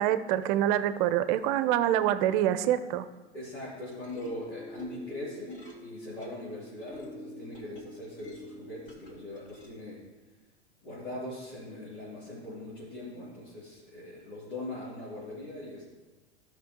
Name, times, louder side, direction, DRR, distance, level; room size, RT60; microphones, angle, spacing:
voice 1, 0.0-3.1, right 11 dB, 45° right, 13 dB, 0.7 m, -26 dB
voice 2, 3.3-10.0 10.8-15.8, left 1 dB, 80° left, -11 dB, 3.4 m, -41 dB
sound 1, 3.7-9.7, equal, 35° left, 2.8 m, -47 dB
13.5 x 6.0 x 3.7 m, 1.2 s
hypercardioid pair, 95°, 34 cm